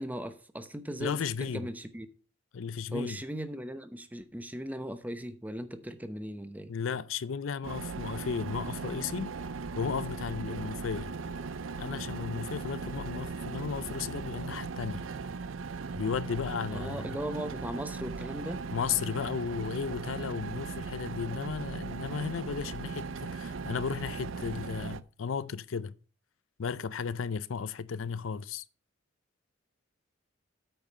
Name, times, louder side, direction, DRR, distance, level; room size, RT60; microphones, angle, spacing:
voice 1, 0.0-2.1 2.9-6.7 16.7-18.6, equal, 10° right, 0.8 m, -38 dB
voice 2, 1.0-1.7 2.5-3.2 6.7-9.3 9.8-11.1 11.8-15.1 15.9-17.2 18.7-25.9 26.6-28.6, left 6 dB, 90° left, 0.5 m, -34 dB
sound 1, 7.6-25.0, right 4 dB, 90° right, 0.5 m, -38 dB
8.9 x 5.3 x 6.4 m
head